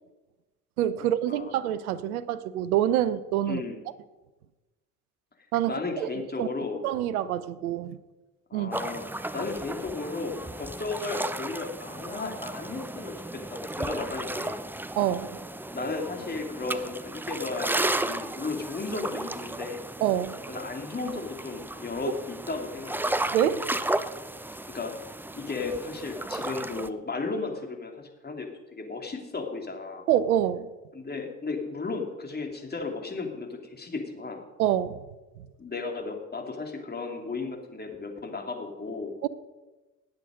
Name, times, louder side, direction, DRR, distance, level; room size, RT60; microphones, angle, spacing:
voice 1, 0.8-3.6 5.5-6.5 6.8-8.0 8.5-8.8 15.0-15.4 20.0-20.4 23.3-23.6 30.1-30.7 34.6-35.0 35.4-35.5 39.2-39.3, right 11 dB, 80° right, 16 dB, 0.8 m, -26 dB
voice 2, 3.5-3.8 5.6-6.8 8.5-14.6 15.7-19.8 20.5-23.2 24.7-24.9 25.4-30.1 30.9-34.4 35.6-39.1, left 3 dB, 20° left, 2 dB, 2.9 m, -34 dB
sound 1, 8.7-26.9, right 1 dB, 5° right, 0.6 m, -34 dB
19.0 x 8.1 x 5.2 m, 1.1 s
hypercardioid pair, 65°, 43 cm